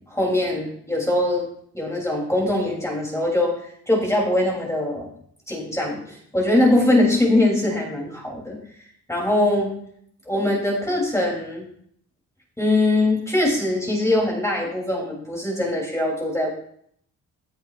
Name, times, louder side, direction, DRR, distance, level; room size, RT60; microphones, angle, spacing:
voice 1, 0.1-1.4 1.7-5.1 5.5-8.5 9.1-9.7 10.3-11.6 12.6-16.5, left 1 dB, 10° left, -3 dB, 3.2 m, -22 dB
15.5 x 7.6 x 2.5 m, 0.65 s
cardioid pair, 105°, 36 cm